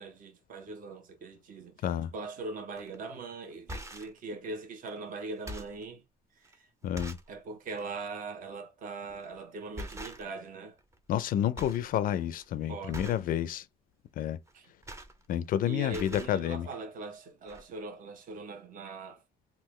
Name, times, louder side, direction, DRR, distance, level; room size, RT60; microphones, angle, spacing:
voice 1, 0.0-6.0 6.4-6.7 7.3-10.8 12.7-13.2 14.5-14.7 15.6-19.2, right 3 dB, 55° right, 1.0 m, -41 dB
sound 1, 2.8-3.0 3.5-4.2 4.9-5.0 5.3-5.8 6.4-6.5 6.9-7.3 7.7-7.9 9.1-9.3 9.7-10.5 10.8-11.3 11.5-11.9 12.2-12.4 12.9-13.3 14.5-15.6 15.8-16.4 17.2-17.3 17.5-17.6, equal, 15° right, 0.6 m, -43 dB
voice 2, 6.8-7.2 11.1-13.6 14.2-14.4 15.3-16.7, left 11 dB, 55° left, 0.4 m, -30 dB
3.7 x 2.4 x 3.0 m
cardioid pair, 110°, 17 cm